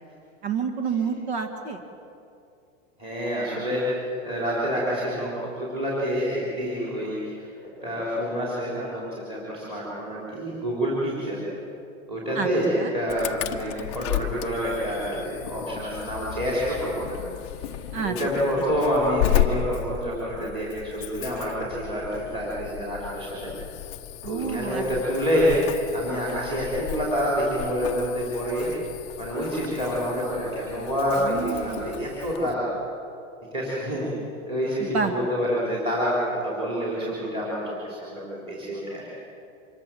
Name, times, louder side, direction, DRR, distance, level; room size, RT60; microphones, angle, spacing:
voice 1, 0.4-1.8 12.4-12.9 17.9-18.1 24.2-24.8 31.2-31.9 34.8-35.1, right 6 dB, 50° right, 5 dB, 2.0 m, -29 dB
voice 2, 3.0-3.8 4.2-7.5 7.8-11.4 12.1-17.2 17.6-23.5 24.2-25.6 25.9-28.7 29.2-32.7 33.5-34.1 34.5-36.1 36.4-39.1, equal, 15° right, -6 dB, 3.7 m, -27 dB
Insect / Alarm, 13.1-32.5, left 12 dB, 20° left, 0.7 m, -34 dB
26.0 x 22.5 x 7.6 m, 2.6 s
supercardioid pair, 180°, 40 cm